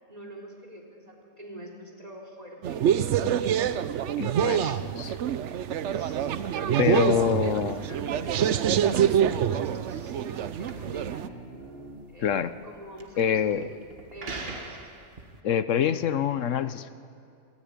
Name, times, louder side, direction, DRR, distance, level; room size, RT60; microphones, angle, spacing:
voice 1, 0.1-3.6 4.2-5.5 5.9-7.2 7.9-11.3 12.1-13.7 14.1-14.8, equal, 30° right, 1 dB, 3.6 m, -45 dB
sound 1, 2.6-11.3, right 9 dB, 65° right, 1.0 m, -26 dB
voice 2, 4.2-5.1 6.8-7.9 12.2-12.5 13.2-13.7 15.4-16.9, left 8 dB, 70° left, 13 dB, 1.1 m, -26 dB
sound 2, 6.4-15.4, right 3 dB, 45° right, 1.7 m, -42 dB
26.0 x 14.0 x 9.6 m, 2.5 s
omnidirectional pair, 1.4 m